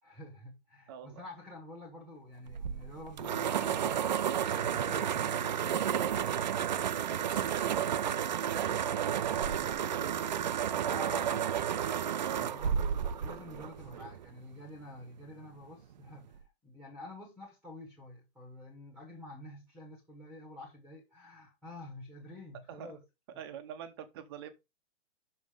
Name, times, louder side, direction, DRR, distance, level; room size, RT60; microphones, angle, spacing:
voice 1, 0.0-6.1 10.9-11.5 12.1-23.0, left 1 dB, ahead, 1.2 m, -48 dB
voice 2, 0.9-1.2 7.2-10.2 10.7-11.1 12.2-12.6 22.7-22.9 23.4-24.5, right 9 dB, 20° right, 0.8 m, -44 dB
sound 1, 2.5-14.3, right 9 dB, 40° right, 0.4 m, -32 dB
6.4 x 5.5 x 5.1 m
hypercardioid pair, 165°, 35 cm